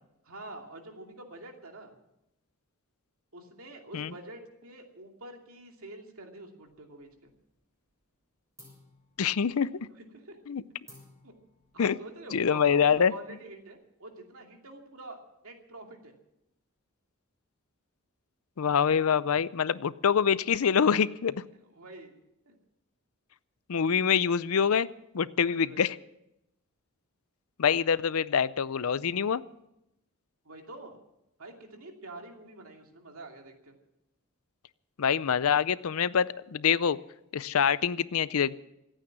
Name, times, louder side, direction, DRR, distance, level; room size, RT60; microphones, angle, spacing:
voice 1, 0.2-1.9 3.3-7.3 9.9-10.4 11.2-11.3 11.7-16.1 21.7-22.1 22.5-22.6 25.4-26.0 30.4-31.0 31.4-33.7, right 2 dB, 70° right, 3 dB, 2.6 m, -47 dB
sound 1, 6.7-7.5 7.8-8.2 8.6-13.7, left 1 dB, 15° right, 6.5 m, -59 dB
voice 2, 9.2-9.7 10.5-10.6 11.8-12.0 12.3-13.1 18.6-21.4 23.7-24.9 25.1-26.0 27.6-29.4 35.0-37.0 37.3-38.6, left 7 dB, 75° left, 18 dB, 0.5 m, -25 dB
25.5 x 9.0 x 6.1 m, 0.86 s
head